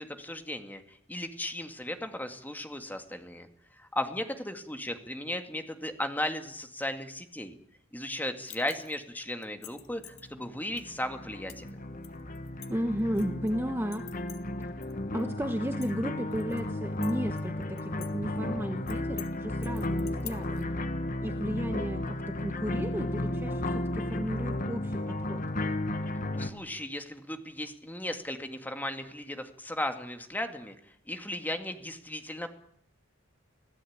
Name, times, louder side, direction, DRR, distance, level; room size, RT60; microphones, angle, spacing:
voice 1, 0.0-3.5 3.7-7.5 7.9-11.7 26.4-30.7 31.1-32.5, left 1 dB, 10° left, 6 dB, 2.1 m, -36 dB
sound 1, 8.5-9.0 9.4-10.2 10.8-10.9 11.5-11.7 12.0-13.5 13.9-14.9 15.2-15.3 15.7-16.6 17.0-18.1 18.4-18.5 18.9-19.3 19.6-20.6, left 15 dB, 90° left, 2.4 m, -46 dB
sound 2, 10.1-26.5, left 1 dB, 40° left, 1.6 m, -34 dB
voice 2, 12.7-14.0 15.1-20.7 21.2-25.4, equal, 10° right, 6 dB, 1.2 m, -34 dB
25.0 x 16.0 x 8.8 m, 0.68 s
head